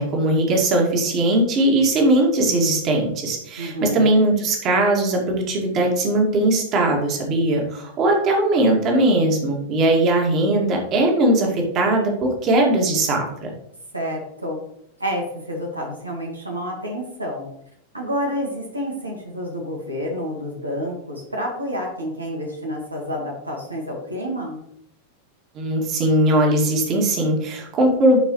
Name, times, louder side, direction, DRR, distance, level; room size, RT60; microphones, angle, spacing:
voice 1, 0.0-13.5 25.5-28.2, right 1 dB, 35° right, 0 dB, 2.2 m, -19 dB
voice 2, 3.6-4.1 13.9-14.6 15.0-17.5 17.9-24.6, equal, 85° right, -1 dB, 1.8 m, -29 dB
11.5 x 4.7 x 3.2 m, 0.72 s
figure-of-eight pair, 90°, 0 cm